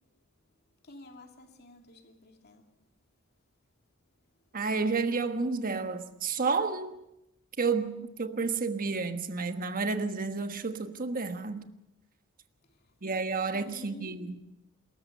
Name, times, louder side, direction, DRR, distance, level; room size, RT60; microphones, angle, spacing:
voice 1, 0.8-2.7 12.6-13.0 13.5-14.3, left 1 dB, 50° left, 2.7 m, -50 dB
voice 2, 4.5-6.9 7.6-11.7 13.0-14.4, right 4 dB, 45° right, 1.4 m, -31 dB
27.0 x 14.5 x 6.8 m
head